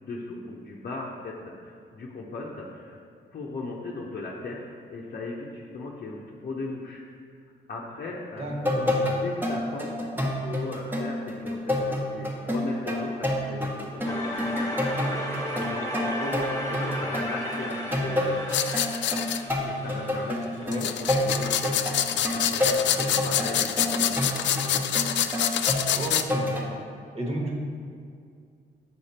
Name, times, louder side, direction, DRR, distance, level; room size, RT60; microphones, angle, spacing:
voice 1, 0.0-3.0 3.3-7.0 7.7-8.6 9.0-14.8 15.1-18.4 19.6-24.4, left 3 dB, 50° left, -4 dB, 0.9 m, -38 dB
voice 2, 8.4-9.2 20.7-20.9 25.9-26.8 27.1-27.6, right 1 dB, 30° right, -1 dB, 1.6 m, -33 dB
sound 1, 8.5-26.7, left 1 dB, 10° right, 1.2 m, -29 dB
sound 2, 14.0-20.9, equal, 15° left, 1.4 m, -34 dB
sound 3, 18.5-19.4 20.7-26.2, left 10 dB, 70° left, 0.4 m, -26 dB
7.2 x 5.0 x 4.3 m, 2.3 s
cardioid pair, 70°, 19 cm